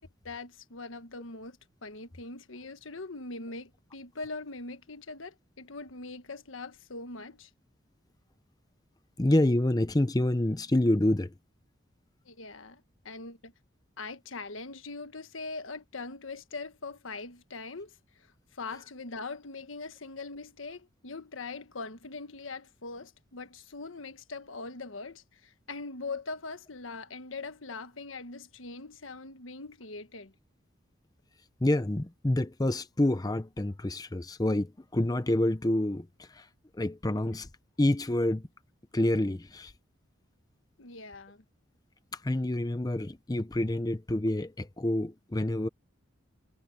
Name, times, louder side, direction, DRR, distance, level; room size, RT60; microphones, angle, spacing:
voice 1, 0.2-7.5 12.2-13.5 14.0-18.0 18.5-30.3 40.8-41.4, left 3 dB, 90° left, 1.4 m, -41 dB
voice 2, 9.2-11.3 31.6-36.5 36.7-37.5 37.8-38.5 38.9-39.7 42.1-45.7, left 1 dB, 20° left, 0.6 m, -27 dB
head